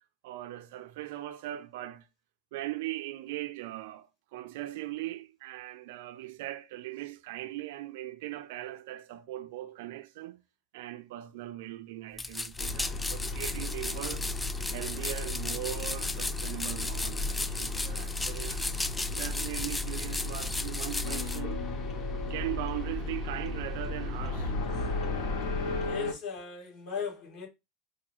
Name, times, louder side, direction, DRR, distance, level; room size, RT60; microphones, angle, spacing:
voice 1, 0.2-2.1 2.5-10.5 10.7-14.3 14.7-18.6 19.1-21.7 22.3-24.5, right 15 dB, 75° right, 0.4 m, -39 dB
sound 1, 12.2-21.4, left 2 dB, 15° left, 0.3 m, -36 dB
sound 2, 12.6-25.9, left 2 dB, 40° left, 0.8 m, -36 dB
sound 3, 21.0-26.1, left 2 dB, 80° left, 0.8 m, -36 dB
voice 2, 25.8-27.5, left 6 dB, 60° left, 2.0 m, -38 dB
4.7 x 2.3 x 3.0 m
hypercardioid pair, 95°, 0 cm